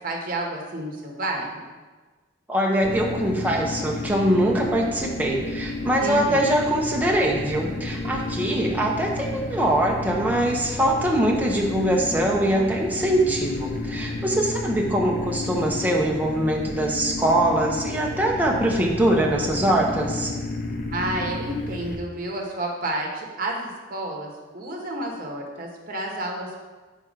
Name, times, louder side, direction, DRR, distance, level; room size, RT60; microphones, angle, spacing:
voice 1, 0.0-1.6 6.0-6.6 20.9-26.6, right 1 dB, 50° right, 0 dB, 1.0 m, -30 dB
voice 2, 2.5-20.3, right 1 dB, 10° right, -1 dB, 0.7 m, -23 dB
sound 1, 2.8-22.0, left 2 dB, 50° left, 0.6 m, -32 dB
4.9 x 4.5 x 5.0 m, 1.3 s
head